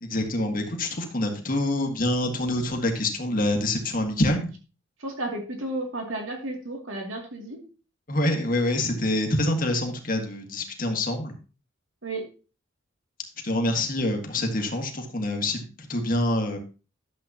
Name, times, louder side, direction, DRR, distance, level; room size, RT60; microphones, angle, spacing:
voice 1, 0.0-4.5 8.1-11.3 13.4-16.6, left 1 dB, 45° left, 3 dB, 1.7 m, -26 dB
voice 2, 5.0-7.6 12.0-12.3, right 1 dB, 80° right, 1 dB, 2.6 m, -33 dB
11.0 x 7.7 x 2.9 m, 0.33 s
head